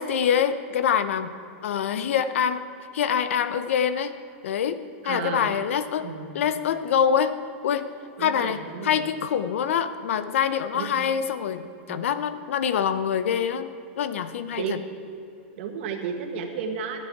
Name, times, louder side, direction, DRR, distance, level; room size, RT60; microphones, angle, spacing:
voice 1, 0.0-1.3 1.6-2.7 2.9-4.2 4.4-6.1 6.3-7.4 7.6-7.9 8.2-13.7 14.0-14.8, left 8 dB, 85° left, 12 dB, 0.7 m, -25 dB
voice 2, 5.0-5.6 6.0-6.6 8.2-9.1 10.7-11.0 11.9-12.0 14.6-15.0 15.6-17.0, right 6 dB, 60° right, 4 dB, 1.5 m, -33 dB
13.0 x 9.5 x 4.7 m, 2.7 s
supercardioid pair, 155°, 7 cm